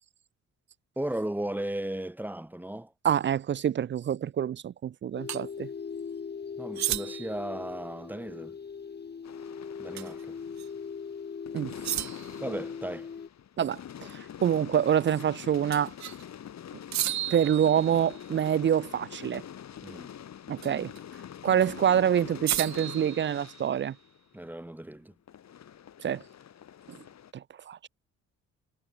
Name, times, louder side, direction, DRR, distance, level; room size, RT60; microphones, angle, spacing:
voice 1, 1.0-2.9 6.6-8.6 9.8-10.4 12.4-13.1 19.8-20.1 24.3-25.1, right 1 dB, 5° right, 1.2 m, -35 dB
voice 2, 3.0-5.7 11.5-11.7 13.6-13.8 14.1-15.9 17.3-19.4 20.5-20.9 21.4-24.0 26.0-26.2 26.9-27.0 27.3-27.9, right 9 dB, 40° right, 0.5 m, -26 dB
sound 1, 5.2-13.3, left 6 dB, 35° left, 1.5 m, -40 dB
sound 2, 5.3-5.4 6.7-7.4 10.0-10.2 10.6-10.7 11.8-12.4 15.7-16.2 16.9-18.3 20.6-21.0 22.5-23.8, right 13 dB, 65° right, 1.0 m, -33 dB
sound 3, 9.2-11.1 11.5-24.9 25.3-27.3, left 9 dB, 60° left, 6.9 m, -45 dB
cardioid pair, 90°, 30 cm